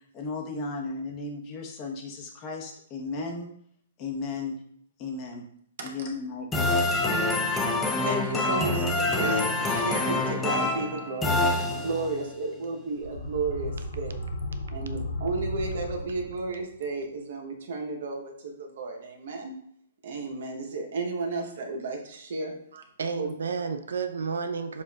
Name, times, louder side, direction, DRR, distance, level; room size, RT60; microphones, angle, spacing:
voice 1, 0.1-3.5 4.0-4.6 5.0-5.4 5.8-6.5, left 3 dB, 30° left, 1 dB, 0.9 m, -35 dB
sound 1, 6.5-12.2, left 2 dB, 10° left, 0.4 m, -26 dB
voice 2, 8.0-11.4 11.8-14.2 14.7-19.5 20.0-22.5 23.2-23.3, right 3 dB, 60° right, 2 dB, 0.9 m, -33 dB
sound 2, 12.9-16.7, left 1 dB, 80° left, 0.9 m, -35 dB
voice 3, 22.7-24.8, right 5 dB, 85° right, 9 dB, 0.4 m, -31 dB
7.2 x 2.5 x 2.3 m, 0.66 s
hypercardioid pair, 145°, 0 cm